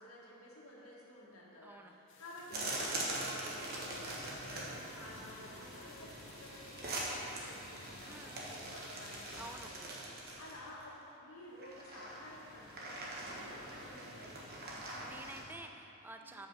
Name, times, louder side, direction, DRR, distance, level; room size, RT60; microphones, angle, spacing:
voice 1, 0.0-9.9 10.4-14.5 16.2-16.5, left 1 dB, 80° left, -5 dB, 1.8 m, -52 dB
voice 2, 1.6-1.9 8.1-8.7 9.4-9.7 14.7-16.5, right 2 dB, 10° right, 5 dB, 0.3 m, -51 dB
sound 1, 2.1-9.7, left 4 dB, 60° left, 0.8 m, -58 dB
sound 2, 2.5-10.8 11.6-15.4, right 1 dB, 45° right, 1.2 m, -43 dB
7.9 x 5.6 x 5.5 m, 2.9 s
head